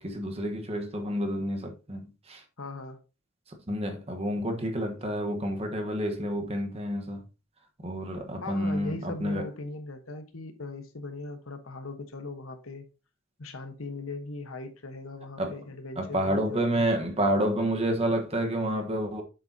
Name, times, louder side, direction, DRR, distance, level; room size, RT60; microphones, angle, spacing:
voice 1, 0.0-2.4 3.7-7.3 7.8-9.5 15.4-15.6 16.0-19.2, right 1 dB, 30° right, 1.2 m, -29 dB
voice 2, 2.6-3.0 8.4-12.9 13.4-16.9, left 2 dB, 75° left, 1.3 m, -39 dB
7.7 x 6.9 x 2.8 m
head